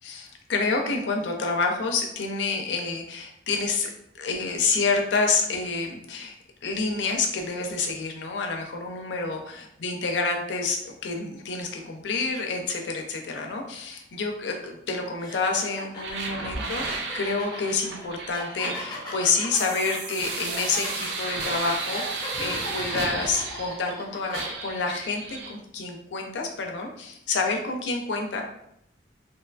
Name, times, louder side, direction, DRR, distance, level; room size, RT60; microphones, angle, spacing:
voice 1, 0.0-6.3 6.6-28.4, left 4 dB, 75° left, 2 dB, 0.4 m, -28 dB
sound 1, 14.5-14.7 15.2-24.5, left 1 dB, 20° left, 0.5 m, -39 dB
sound 2, 16.0-24.0 24.3-25.5, right 3 dB, 65° right, 0.4 m, -34 dB
2.7 x 2.4 x 2.2 m, 0.77 s
head